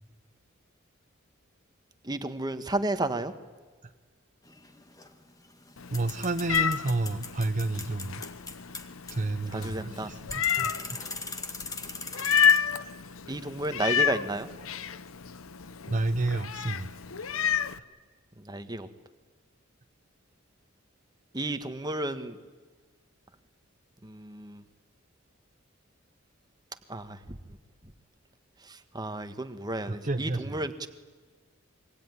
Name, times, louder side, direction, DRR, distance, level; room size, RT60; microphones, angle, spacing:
voice 1, 2.0-3.3 9.5-10.1 13.3-14.5 18.4-18.9 21.3-22.4 24.0-24.6 26.9-27.4 28.7-30.9, right 2 dB, 20° right, 9 dB, 1.5 m, -32 dB
sound 1, 4.4-12.6, left 4 dB, 20° left, 1.9 m, -41 dB
Meow, 5.8-17.8, left 7 dB, 80° left, 0.9 m, -30 dB
voice 2, 5.9-8.2 9.1-11.0 15.9-16.9 29.9-30.7, right 2 dB, 40° right, 8 dB, 0.8 m, -30 dB
26.0 x 23.5 x 9.7 m, 1.4 s
head